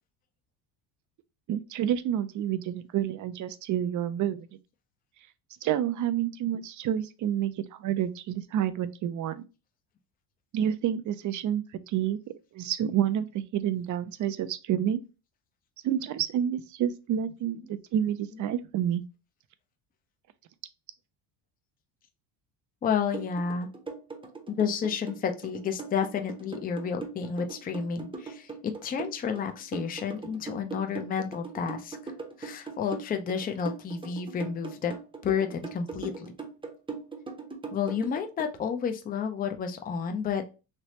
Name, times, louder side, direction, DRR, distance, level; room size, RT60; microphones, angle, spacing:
voice 1, 1.5-4.5 5.6-9.4 10.5-12.2 12.5-15.0 15.8-19.0, right 10 dB, 45° right, 0.4 m, -29 dB
voice 2, 22.8-23.7 24.5-32.1 32.4-34.9 35.2-36.3 37.7-40.4, left 6 dB, 20° left, 0.4 m, -31 dB
sound 1, 23.1-38.5, right 4 dB, 10° right, 0.7 m, -40 dB
3.2 x 3.0 x 2.8 m
cardioid pair, 110°, 46 cm